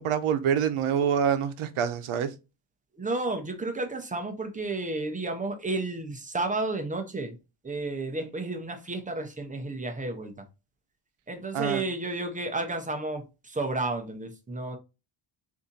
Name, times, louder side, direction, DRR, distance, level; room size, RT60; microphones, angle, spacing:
voice 1, 0.0-2.3 11.5-11.8, right 8 dB, 80° right, 0.8 m, -26 dB
voice 2, 3.0-7.4 7.6-10.4 11.3-14.8, right 2 dB, 15° right, 0.5 m, -32 dB
4.0 x 2.7 x 3.7 m
wide cardioid pair, 180°, 50 cm